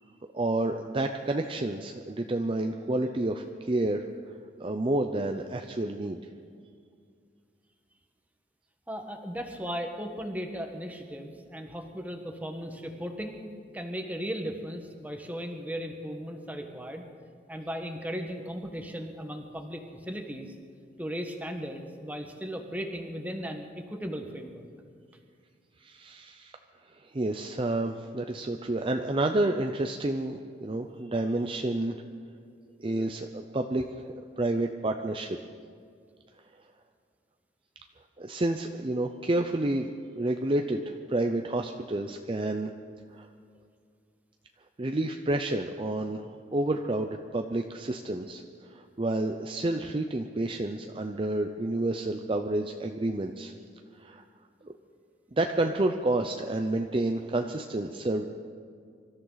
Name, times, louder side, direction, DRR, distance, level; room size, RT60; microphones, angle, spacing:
voice 1, 0.3-4.1 4.6-6.2 25.8-26.6 27.0-32.0 32.8-33.8 34.4-35.4 38.2-42.7 43.1-43.3 44.8-48.4 48.7-53.5 54.0-54.2 54.6-54.7 55.3-58.3, right 2 dB, 30° right, 5 dB, 0.6 m, -29 dB
voice 2, 8.9-13.4 13.7-17.1 17.5-20.5 21.0-24.6, equal, 10° right, 4 dB, 1.3 m, -36 dB
25.0 x 14.0 x 4.0 m, 2.2 s
head